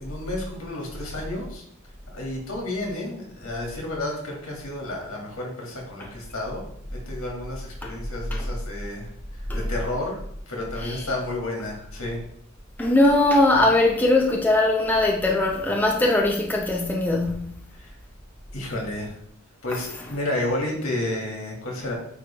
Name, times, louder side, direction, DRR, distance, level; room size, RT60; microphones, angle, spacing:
voice 1, 0.0-1.6 2.1-6.6 6.9-9.1 9.4-12.2 17.7-17.9 18.5-19.1 19.6-21.9, left 1 dB, 75° left, 2.1 m, -31 dB
voice 2, 12.8-17.5, left 2 dB, 10° left, 0.6 m, -20 dB
9.1 x 3.2 x 3.4 m
head